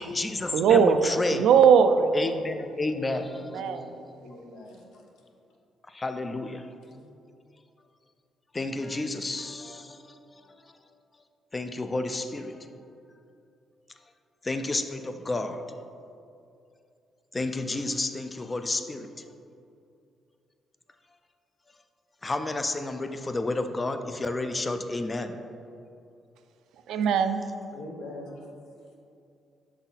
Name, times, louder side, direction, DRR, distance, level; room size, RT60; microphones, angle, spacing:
voice 1, 0.0-1.5 2.1-3.6 5.9-6.7 8.5-10.7 11.5-12.6 14.4-15.6 17.3-19.1 22.2-25.4, left 2 dB, 25° left, 8 dB, 0.4 m, -31 dB
voice 2, 0.5-2.4 3.4-4.0 26.9-27.4, right 6 dB, 80° right, 9 dB, 0.3 m, -21 dB
voice 3, 3.0-5.0 6.8-7.1 27.7-28.5, left 1 dB, 90° left, 0 dB, 0.9 m, -44 dB
5.9 x 4.0 x 4.0 m, 2.6 s
cardioid pair, 90°, 0 cm